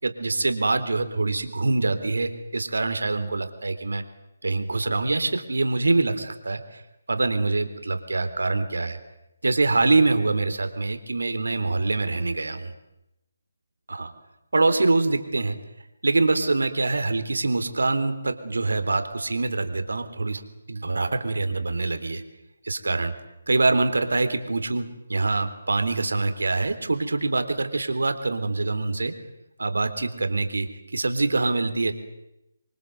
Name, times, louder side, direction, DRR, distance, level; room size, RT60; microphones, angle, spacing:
voice 1, 0.0-4.0 4.4-6.8 7.1-9.0 9.4-12.7 13.9-14.1 14.5-15.6 16.0-20.4 20.7-22.2 22.6-23.1 23.5-29.1 29.6-30.7 30.9-31.9, right 3 dB, 80° right, 9 dB, 3.6 m, -24 dB
27.5 x 24.0 x 7.9 m, 0.90 s
figure-of-eight pair, 155°, 0 cm